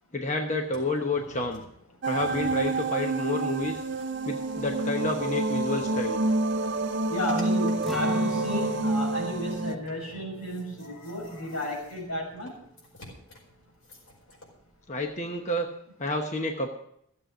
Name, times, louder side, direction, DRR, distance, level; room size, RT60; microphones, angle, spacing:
voice 1, 0.1-1.6 2.1-3.8 4.3-6.2 14.9-15.7 16.0-16.7, left 2 dB, 30° left, 3 dB, 1.0 m, -29 dB
sound 1, 0.6-8.2 8.8-8.9 9.1-14.5, left 2 dB, 60° left, 4.8 m, -50 dB
sound 2, 2.0-9.8, right 2 dB, 50° right, 0.6 m, -28 dB
voice 2, 7.1-12.5, equal, 85° left, 0 dB, 5.6 m, -33 dB
Acoustic guitar, 7.8-13.7 14.0-14.2 14.7-15.2, equal, ahead, 1.0 m, -41 dB
15.5 x 7.7 x 6.8 m, 0.71 s
head